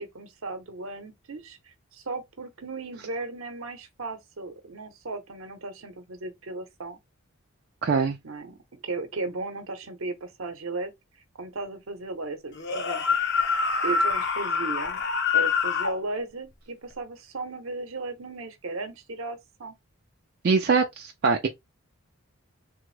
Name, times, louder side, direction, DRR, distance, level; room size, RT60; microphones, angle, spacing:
voice 1, 0.0-7.0 8.2-10.9 11.4-13.0 13.8-15.0 15.3-19.7, right 3 dB, 70° right, 0.8 m, -36 dB
voice 2, 7.8-8.2 20.4-21.5, right 5 dB, 45° right, 0.3 m, -23 dB
sound 1, 12.6-16.0, left 5 dB, 50° left, 0.6 m, -25 dB
3.4 x 2.0 x 3.2 m
head